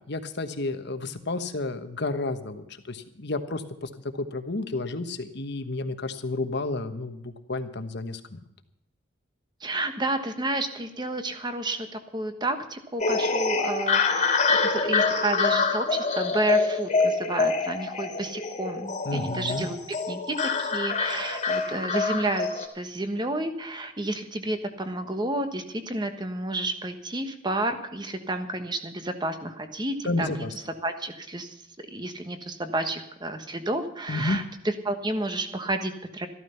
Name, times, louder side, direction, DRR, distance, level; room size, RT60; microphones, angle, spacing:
voice 1, 0.1-8.4 19.0-19.7 30.0-30.5 34.1-34.4, left 2 dB, 55° left, 9 dB, 1.2 m, -31 dB
voice 2, 9.6-19.8 20.1-31.6 31.9-36.3, right 2 dB, 20° right, 7 dB, 1.3 m, -31 dB
sound 1, 13.0-22.7, left 4 dB, 35° left, 2.2 m, -26 dB
14.0 x 12.5 x 5.7 m, 0.82 s
head